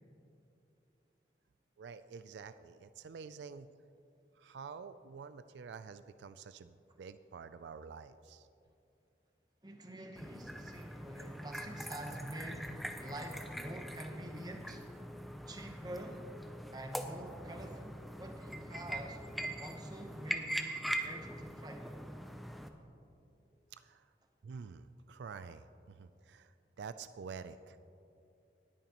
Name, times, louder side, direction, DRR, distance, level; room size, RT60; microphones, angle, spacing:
voice 1, 1.8-3.7 4.4-8.5 23.7-24.1 24.4-27.8, right 5 dB, 85° right, 12 dB, 0.3 m, -48 dB
voice 2, 9.6-14.8 15.5-16.2 16.7-19.2 19.6-21.9, right 1 dB, 20° right, 3 dB, 1.0 m, -47 dB
sound 1, 10.2-22.7, equal, ahead, 0.5 m, -42 dB
19.5 x 9.0 x 3.0 m, 2.7 s
head